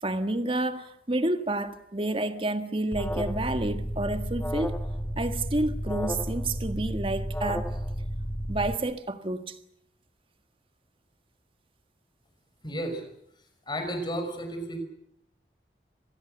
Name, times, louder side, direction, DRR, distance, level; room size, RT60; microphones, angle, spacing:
voice 1, 0.0-4.8 5.2-7.7 8.5-9.6, right 2 dB, 30° right, 1.6 m, -29 dB
Alarm, 2.9-8.7, equal, 10° left, 1.3 m, -32 dB
voice 2, 12.6-13.0 13.7-14.8, equal, 25° left, 5.7 m, -32 dB
25.5 x 20.0 x 8.0 m
head